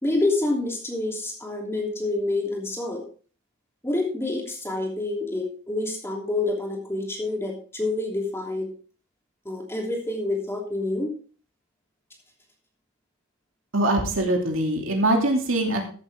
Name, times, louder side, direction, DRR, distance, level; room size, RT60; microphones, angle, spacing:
voice 1, 0.0-3.0 3.8-8.7 9.4-11.2, left 2 dB, 10° left, 0 dB, 3.0 m, -27 dB
voice 2, 13.7-15.9, right 1 dB, 70° right, 2 dB, 2.8 m, -23 dB
14.5 x 8.2 x 3.6 m, 0.40 s
head